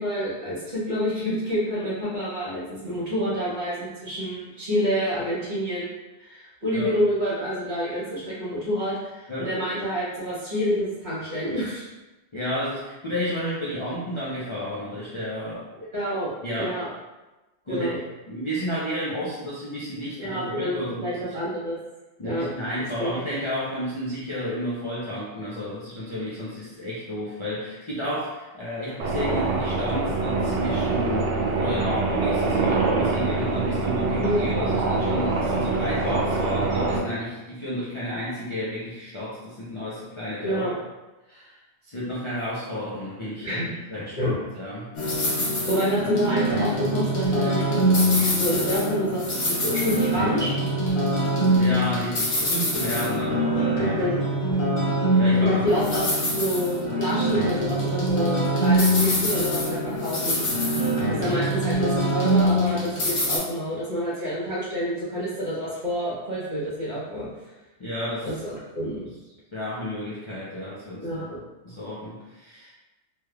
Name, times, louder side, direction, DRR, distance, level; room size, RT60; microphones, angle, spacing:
voice 1, 0.0-11.9 15.8-16.9 17.7-18.0 20.2-21.8 22.2-22.5 23.0-23.1 34.2-34.4 40.4-40.7 43.4-43.7 44.1-44.3 45.7-50.5 53.7-54.2 55.4-56.1 56.4-67.3 68.2-69.1 71.0-71.4, equal, 40° right, -9 dB, 1.4 m, -28 dB
voice 2, 12.3-15.7 16.4-16.8 17.6-21.1 22.2-40.6 41.3-44.9 45.5-45.7 50.2-50.3 51.3-54.1 55.2-55.7 61.0-61.6 67.8-68.3 69.5-72.7, equal, 35° left, -9 dB, 0.5 m, -32 dB
sound 1, 29.0-37.0, right 3 dB, 90° right, 0.9 m, -24 dB
sound 2, 44.9-63.4, equal, 65° left, 1.1 m, -23 dB
3.3 x 3.2 x 2.3 m, 1.1 s
omnidirectional pair, 1.2 m